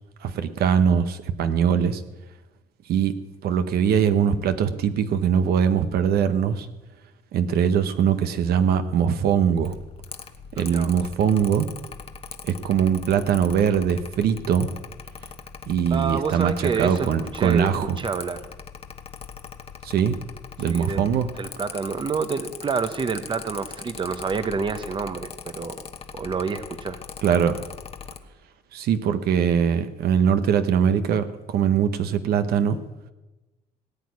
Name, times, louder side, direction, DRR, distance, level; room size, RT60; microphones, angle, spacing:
voice 1, 0.2-2.0 2.9-3.1 3.4-6.7 7.3-9.8 10.6-11.7 12.4-14.7 15.7-18.0 19.8-20.2 20.6-21.3 27.2-27.6 28.7-32.8, right 8 dB, 70° right, 10 dB, 1.0 m, -22 dB
Mechanical fan, 9.7-28.2, left 6 dB, 35° left, 1.0 m, -40 dB
voice 2, 10.5-11.0 15.9-17.1 17.3-18.4 20.6-21.0 21.4-25.8 26.1-27.0, right 5 dB, 30° right, 11 dB, 0.9 m, -28 dB
18.0 x 6.3 x 9.7 m, 1.1 s
cardioid pair, 110°, 17 cm